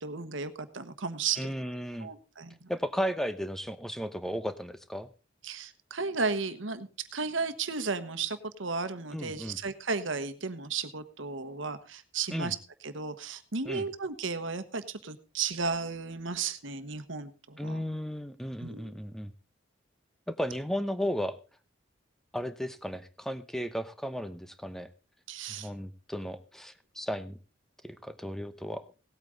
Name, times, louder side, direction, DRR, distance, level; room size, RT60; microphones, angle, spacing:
voice 1, 0.0-1.5 2.0-2.7 5.4-12.6 12.8-17.8 18.6-19.0 25.3-25.7, right 4 dB, 75° right, 11 dB, 1.2 m, -34 dB
voice 2, 1.4-2.1 2.7-5.1 9.1-9.6 12.3-12.5 13.6-13.9 17.6-19.3 20.3-21.4 22.3-24.9 25.5-27.4 27.8-28.9, equal, ahead, 11 dB, 0.8 m, -35 dB
17.5 x 8.7 x 3.9 m, 0.33 s
head